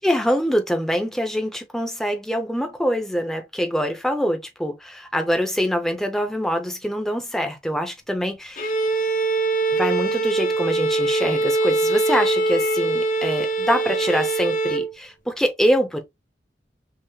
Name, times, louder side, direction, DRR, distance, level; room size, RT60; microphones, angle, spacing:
voice 1, 0.0-8.7 9.7-16.0, equal, ahead, 0.6 m, -24 dB
Bowed string instrument, 8.6-14.9, right 2 dB, 50° left, 0.7 m, -22 dB
5.6 x 2.0 x 3.1 m
head